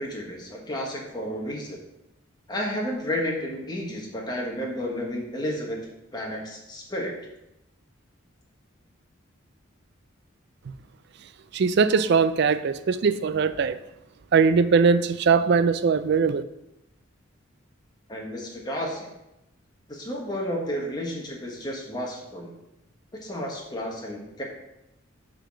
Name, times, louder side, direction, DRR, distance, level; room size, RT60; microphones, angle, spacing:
voice 1, 0.0-1.8 2.5-5.8 6.1-7.1 18.1-19.1 19.9-22.6 23.2-24.4, equal, 20° left, -1 dB, 1.3 m, -32 dB
voice 2, 11.5-13.8 14.3-16.4, right 5 dB, 55° right, 13 dB, 0.4 m, -21 dB
6.6 x 4.0 x 6.3 m, 0.90 s
head